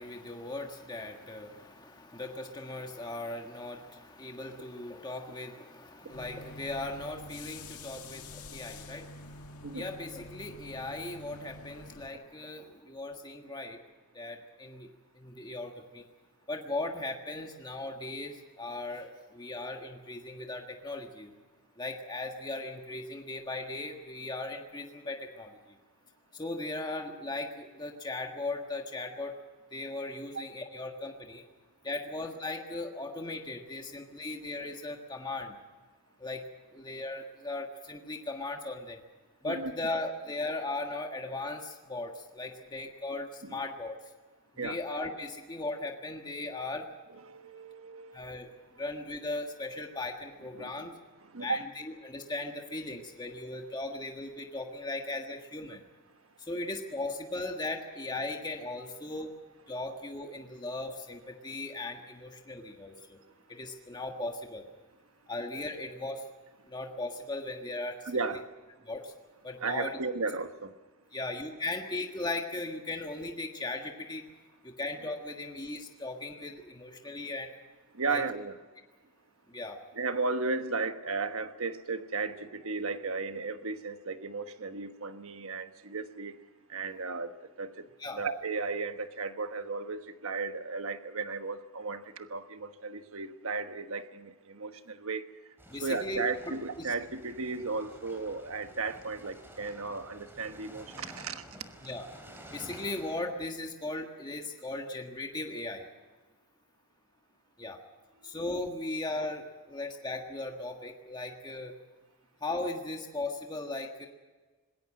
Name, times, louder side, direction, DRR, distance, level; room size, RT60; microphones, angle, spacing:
voice 1, 0.0-13.8 14.1-16.0 16.5-21.3 21.8-25.8 26.3-29.3 29.7-31.4 31.8-35.5 36.2-36.4 36.7-39.0 39.4-44.0 44.5-46.9 48.1-48.5 48.8-50.9 51.4-55.8 56.4-59.4 59.7-63.2 63.5-64.6 65.3-66.2 66.7-68.1 68.8-69.1 69.4-70.0 71.1-74.3 74.6-77.5 78.1-78.2 79.5-79.8 88.0-88.2 95.7-96.2 96.8-96.9 101.8-102.0 102.5-105.9 107.6-107.8 108.2-111.7 112.4-114.1, left 2 dB, 20° left, 3 dB, 1.5 m, -38 dB
sound 1, 6.1-12.1, left 2 dB, 85° left, 1.9 m, -47 dB
voice 2, 47.1-48.4 50.5-50.9 51.3-51.6 68.0-68.5 69.6-70.7 77.9-78.6 79.9-86.4 86.7-87.9 88.1-95.2 95.8-101.4, right 4 dB, 70° right, 9 dB, 1.3 m, -35 dB
sound 2, 95.6-103.2, equal, 10° right, 3.3 m, -51 dB
20.5 x 17.0 x 7.7 m, 1.3 s
head